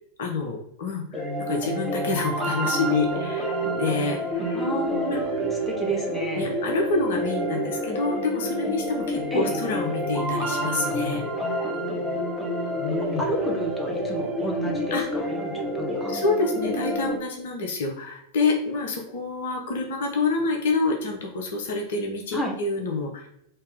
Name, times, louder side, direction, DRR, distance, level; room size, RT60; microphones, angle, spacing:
voice 1, 0.2-4.6 5.1-5.2 6.3-11.2 12.7-13.3 14.9-15.0 16.1-23.3, left 3 dB, 55° left, 1 dB, 0.8 m, -27 dB
sound 1, 1.1-17.1, equal, 10° right, 1.3 m, -28 dB
voice 2, 4.5-6.6 9.3-9.6 12.9-16.2 22.3-22.5, equal, 15° left, 0 dB, 1.0 m, -31 dB
4.4 x 2.8 x 3.5 m, 0.78 s
figure-of-eight pair, 90°, 0 cm